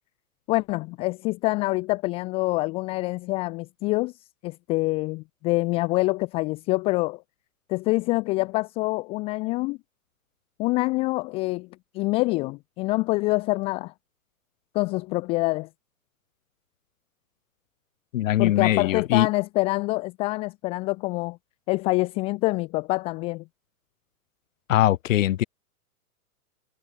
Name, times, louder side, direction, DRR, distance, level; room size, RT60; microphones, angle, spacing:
voice 1, 0.5-4.1 4.4-7.2 7.7-9.8 10.6-11.7 11.9-13.9 14.7-15.7 18.4-21.4 21.7-23.4, left 23 dB, 15° left, 0.5 m, -26 dB
voice 2, 18.1-19.3 24.7-25.4, left 13 dB, 60° left, 2.2 m, -21 dB
hypercardioid pair, 150°, 44 cm